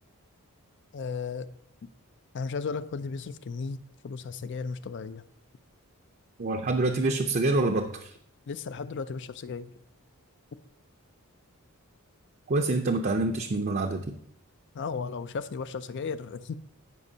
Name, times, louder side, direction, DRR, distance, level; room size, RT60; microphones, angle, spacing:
voice 1, 0.9-1.5 2.3-3.8 4.0-5.2 8.5-9.7 14.7-16.5, left 5 dB, 50° left, 13 dB, 0.4 m, -35 dB
voice 2, 6.4-8.1 12.5-14.1, right 2 dB, 40° right, 3 dB, 0.5 m, -26 dB
14.0 x 5.4 x 2.8 m, 0.67 s
head